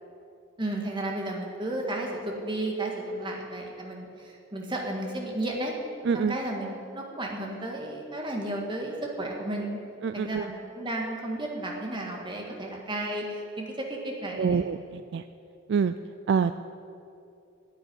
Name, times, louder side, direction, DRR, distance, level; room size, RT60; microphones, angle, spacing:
voice 1, 0.6-5.7 6.1-9.8 10.1-14.6, right 1 dB, 25° right, 0 dB, 1.8 m, -33 dB
voice 2, 6.0-6.4 10.0-10.5 14.4-15.3 15.7-15.9 16.3-16.5, right 6 dB, 55° right, 11 dB, 0.3 m, -26 dB
10.0 x 8.7 x 9.6 m, 2.7 s
head